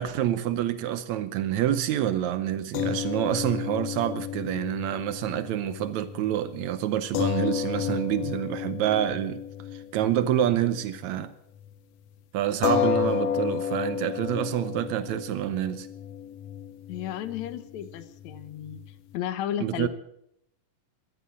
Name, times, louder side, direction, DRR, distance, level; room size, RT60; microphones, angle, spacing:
voice 1, 0.0-9.4 9.7-11.3 12.3-15.9 19.6-19.9, right 11 dB, 75° right, 1.7 m, -27 dB
sound 1, 2.7-11.3 11.6-11.7 12.6-19.2, left 9 dB, 85° left, 1.3 m, -32 dB
voice 2, 16.9-18.8 19.1-19.9, left 10 dB, 65° left, 2.1 m, -33 dB
14.0 x 11.5 x 8.6 m
omnidirectional pair, 4.0 m